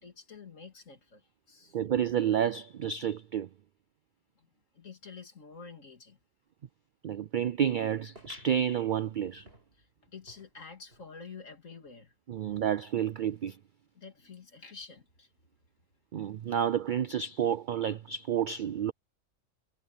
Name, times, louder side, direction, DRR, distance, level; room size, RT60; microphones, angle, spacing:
voice 1, 0.0-1.8 4.4-4.5 4.7-6.2 9.8-12.1 13.9-15.3, left 5 dB, 70° left, 2.9 m, -49 dB
voice 2, 1.7-3.5 7.0-9.5 12.3-13.6 16.1-18.9, right 9 dB, 90° right, 0.4 m, -30 dB
sound 1, 8.1-11.1 11.5-11.6 11.8-11.9 12.7-12.8, right 1 dB, 45° right, 6.9 m, -56 dB
omnidirectional pair, 1.4 m